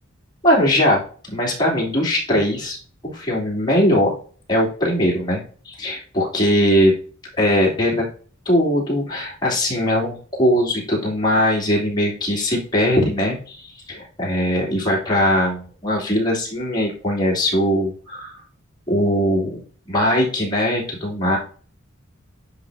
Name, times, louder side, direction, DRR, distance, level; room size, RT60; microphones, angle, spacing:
voice 1, 0.4-2.8 3.0-4.2 4.5-6.9 7.4-8.1 8.4-18.4 18.9-19.6 19.9-21.4, equal, 20° left, -4 dB, 3.0 m, -20 dB
10.5 x 4.2 x 2.7 m, 0.42 s
head